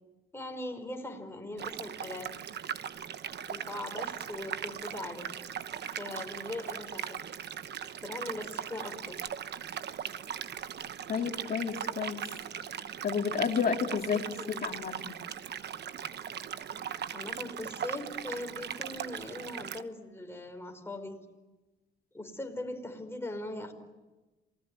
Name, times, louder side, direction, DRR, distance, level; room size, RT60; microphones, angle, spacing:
voice 1, 0.3-2.3 3.5-5.3 6.0-7.2 8.0-9.2 14.0-14.6 17.1-21.2 22.1-23.7, left 1 dB, 10° left, 4 dB, 5.0 m, -40 dB
sound 1, 1.6-19.8, right 9 dB, 60° right, 1.0 m, -39 dB
voice 2, 11.1-12.2 13.0-14.2 14.6-15.2, left 6 dB, 50° left, 4 dB, 2.6 m, -31 dB
27.5 x 19.5 x 9.6 m, 1.2 s
cardioid pair, 90°, 20 cm